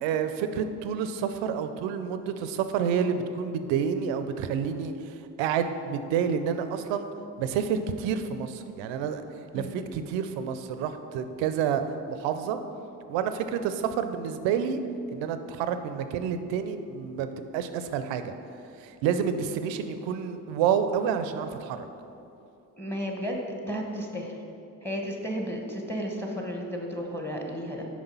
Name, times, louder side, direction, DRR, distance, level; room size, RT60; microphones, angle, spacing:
voice 1, 0.0-7.1 7.4-9.2 9.5-11.8 12.1-12.6 13.1-14.8 15.1-18.3 18.8-21.9, right 7 dB, 85° right, 9 dB, 0.5 m, -29 dB
voice 2, 22.8-24.4 24.8-27.9, equal, 5° left, 1 dB, 1.3 m, -33 dB
6.1 x 4.7 x 5.5 m, 2.7 s
hypercardioid pair, 45°, 43 cm